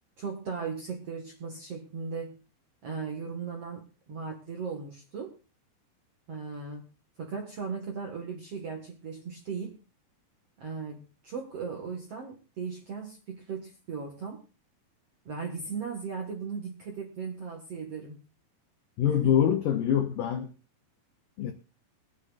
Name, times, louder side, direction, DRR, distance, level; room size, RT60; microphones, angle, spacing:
voice 1, 0.2-2.3 2.8-5.3 6.3-6.9 7.2-9.8 10.6-14.4 15.3-18.2 19.1-19.4, right 5 dB, 60° right, 1.6 m, -37 dB
voice 2, 19.0-20.5 21.4-21.5, left 9 dB, 90° left, 1.9 m, -25 dB
22.5 x 9.8 x 2.5 m
omnidirectional pair, 5.2 m